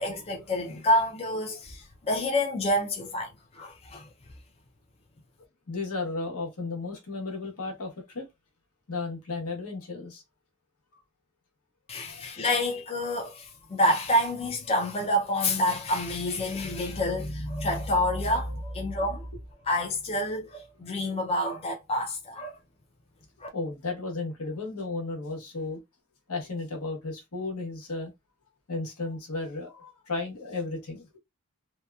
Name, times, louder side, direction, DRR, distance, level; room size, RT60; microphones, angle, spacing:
voice 1, 0.0-4.1 11.9-19.3 19.7-22.6 23.4-23.5, left 1 dB, 25° left, 0.4 m, -28 dB
voice 2, 5.7-8.3 8.9-10.2 12.0-12.4 23.5-25.8 26.3-28.1 28.7-31.2, left 3 dB, 75° left, 1.0 m, -34 dB
2.7 x 2.2 x 2.3 m
head